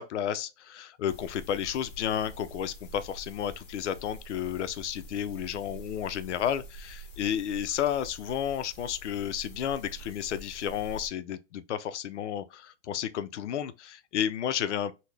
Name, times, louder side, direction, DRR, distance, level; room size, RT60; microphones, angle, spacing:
voice 1, 0.0-14.9, left 9 dB, 70° left, 0.5 m, -32 dB
sound 1, 1.1-11.1, right 1 dB, 45° left, 0.9 m, -46 dB
3.9 x 2.1 x 3.2 m
supercardioid pair, 180°, 37 cm